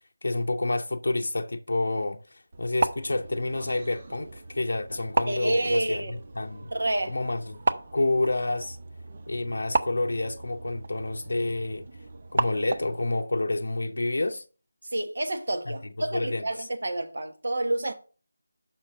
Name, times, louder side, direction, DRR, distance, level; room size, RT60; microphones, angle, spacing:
voice 1, 0.2-6.7 7.1-7.6 7.9-8.8 9.3-11.9 12.3-14.4 15.7-16.7, left 2 dB, 60° left, 0.7 m, -29 dB
sound 1, 2.5-13.1, right 3 dB, 30° right, 0.4 m, -34 dB
voice 2, 5.3-6.1 6.7-7.1 14.9-17.9, right 1 dB, 55° right, 1.2 m, -28 dB
5.8 x 4.3 x 6.2 m
figure-of-eight pair, 180°, 0 cm